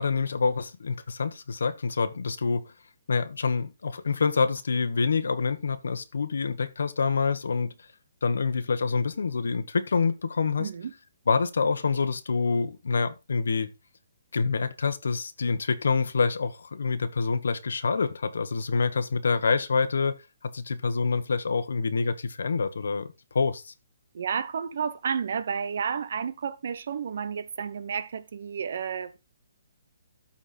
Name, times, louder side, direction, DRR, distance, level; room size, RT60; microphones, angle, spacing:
voice 1, 0.0-2.7 3.1-7.7 8.2-10.7 11.3-13.7 14.3-20.1 20.4-23.1 23.3-23.7, left 4 dB, 75° left, 1.2 m, -26 dB
voice 2, 10.6-10.9 24.1-29.2, right 7 dB, 55° right, 0.9 m, -31 dB
13.0 x 4.4 x 4.3 m
hypercardioid pair, 170°, 0 cm